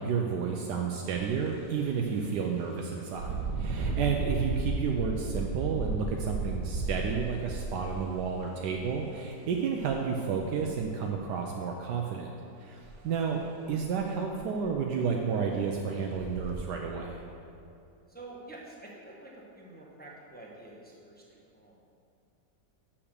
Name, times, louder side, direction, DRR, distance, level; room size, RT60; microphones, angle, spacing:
voice 1, 0.0-12.3 12.6-12.8 13.0-17.2, right 6 dB, 80° right, 1 dB, 1.2 m, -31 dB
Engine, 1.0-1.3 1.7-1.9 3.1-8.9 9.8-9.9 10.3-11.1 12.8-13.0 13.3-13.4 13.9-14.0 14.3-14.8 15.4-15.5 16.1-16.5, right 3 dB, 65° right, 1.2 m, -34 dB
voice 2, 18.1-21.8, right 2 dB, 10° left, -4 dB, 0.7 m, -48 dB
6.6 x 5.9 x 6.5 m, 2.7 s
omnidirectional pair, 1.8 m